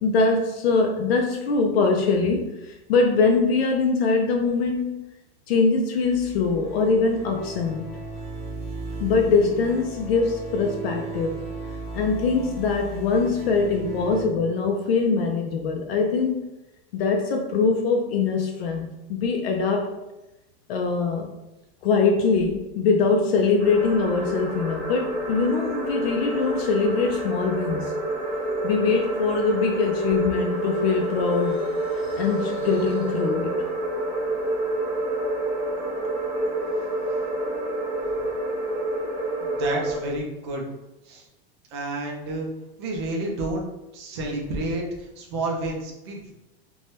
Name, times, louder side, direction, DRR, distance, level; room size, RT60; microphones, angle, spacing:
voice 1, 0.0-5.0 5.5-7.9 9.0-11.4 11.9-16.5 16.9-19.9 20.7-21.3 21.8-27.9 28.6-33.6, left 4 dB, 70° left, 2 dB, 0.5 m, -23 dB
sound 1, 6.0-14.2, right 2 dB, 30° left, 0.7 m, -36 dB
sound 2, 23.6-40.0, right 1 dB, 45° right, 0.8 m, -28 dB
voice 2, 39.4-40.6 41.0-41.3 41.7-42.5 42.8-43.7 43.9-46.3, right 2 dB, 30° right, 0 dB, 0.4 m, -30 dB
2.7 x 2.2 x 3.1 m, 0.97 s
supercardioid pair, 180°, 32 cm